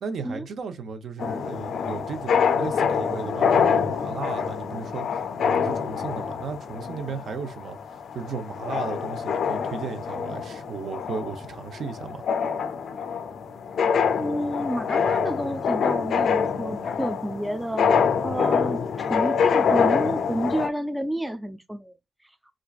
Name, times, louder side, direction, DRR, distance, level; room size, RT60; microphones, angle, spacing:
voice 1, 0.0-7.8 8.1-12.2, right 5 dB, 60° right, 0.7 m, -35 dB
sound 1, 1.2-20.7, left 6 dB, 65° left, 0.4 m, -25 dB
voice 2, 14.2-21.9, equal, 5° right, 0.3 m, -30 dB
4.4 x 2.5 x 2.4 m
wide cardioid pair, 155°, 0 cm